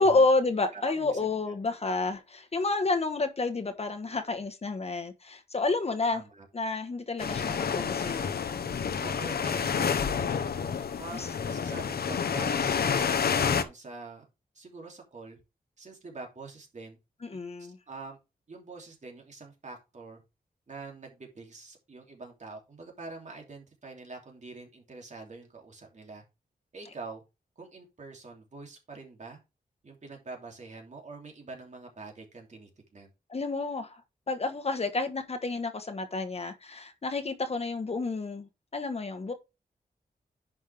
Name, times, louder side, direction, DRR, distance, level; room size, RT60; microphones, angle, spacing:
voice 1, 0.0-6.2 6.5-8.3 11.1-11.3 17.2-17.8 33.3-34.0 34.3-39.3, left 3 dB, 40° left, 1.3 m, -29 dB
voice 2, 0.7-1.3 6.1-6.5 9.0-10.3 11.0-14.3 14.5-15.4 15.8-17.0 17.3-18.2 18.5-20.2 20.7-26.2 26.7-27.2 27.6-29.4 29.8-33.1, right 3 dB, 50° right, 2.9 m, -45 dB
sound 1, 7.2-13.6, left 6 dB, 75° left, 1.0 m, -29 dB
10.5 x 5.5 x 3.5 m
wide cardioid pair, 130°, 16 cm